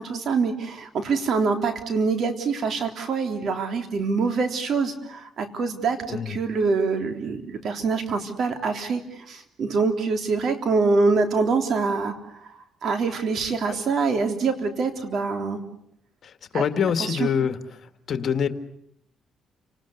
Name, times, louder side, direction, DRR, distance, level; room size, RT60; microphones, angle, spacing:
voice 1, 0.0-12.5 12.8-15.6 16.5-16.6 17.0-17.3, right 4 dB, 60° right, 6 dB, 3.4 m, -25 dB
voice 2, 16.2-17.6 18.1-18.5, left 7 dB, 60° left, 9 dB, 1.9 m, -25 dB
30.0 x 19.5 x 8.2 m, 0.73 s
cardioid pair, 90°, 0 cm